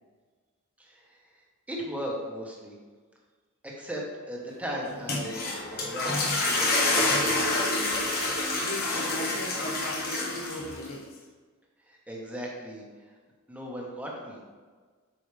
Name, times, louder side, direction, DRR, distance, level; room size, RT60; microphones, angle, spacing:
voice 1, 0.8-1.2 1.7-2.7 3.6-7.5 11.9-12.8 13.5-14.4, equal, 5° right, -3 dB, 1.5 m, -37 dB
sound 1, 4.9-10.9, left 2 dB, 45° left, 1.4 m, -27 dB
voice 2, 8.6-11.2, left 1 dB, 60° left, 0 dB, 1.1 m, -39 dB
8.2 x 6.1 x 3.5 m, 1.5 s
head